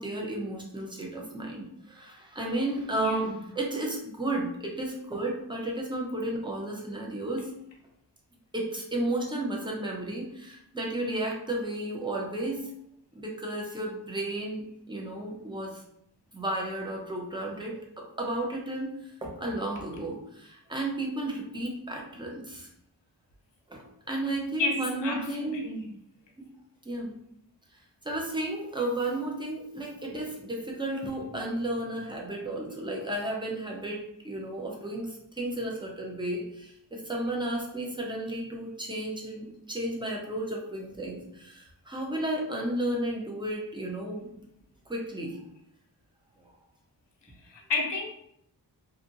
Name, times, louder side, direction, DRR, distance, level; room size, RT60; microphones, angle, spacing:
voice 1, 0.0-7.5 8.5-12.7 13.1-15.8 16.3-22.7 23.7-25.7 26.8-27.1 28.0-44.3 44.9-45.4 46.4-46.5, right 1 dB, 10° right, -1 dB, 0.6 m, -33 dB
voice 2, 3.0-3.3 19.2-19.3 24.3-25.9 47.5-48.1, left 3 dB, 80° left, 1 dB, 0.7 m, -32 dB
2.6 x 2.6 x 2.6 m, 0.75 s
wide cardioid pair, 90°, 42 cm